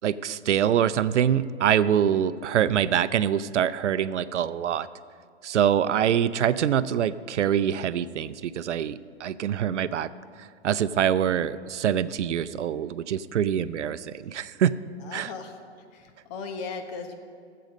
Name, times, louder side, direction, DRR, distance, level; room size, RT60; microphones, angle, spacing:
voice 1, 0.0-4.9 5.4-10.1 10.4-14.7 15.1-15.3, right 9 dB, 80° right, 15 dB, 0.5 m, -25 dB
voice 2, 15.0-17.1, left 4 dB, 35° left, 6 dB, 1.2 m, -38 dB
13.0 x 7.7 x 5.3 m, 2.2 s
hypercardioid pair, 130°, 35 cm